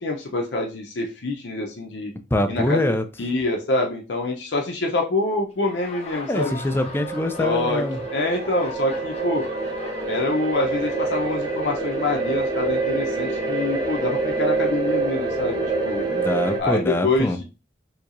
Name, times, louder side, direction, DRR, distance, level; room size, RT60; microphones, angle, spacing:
voice 1, 0.0-2.1 2.5-2.8 3.2-6.5 7.4-7.8 8.1-9.5 10.1-16.1 16.6-17.4, left 2 dB, 70° left, 0.7 m, -25 dB
voice 2, 2.3-3.0 6.3-8.0 16.1-17.4, left 1 dB, 15° left, 0.4 m, -24 dB
Laughter, 5.5-13.1, left 3 dB, 35° left, 0.7 m, -41 dB
sound 1, 5.9-16.6, right 3 dB, 25° right, 0.8 m, -26 dB
4.5 x 2.8 x 2.6 m
head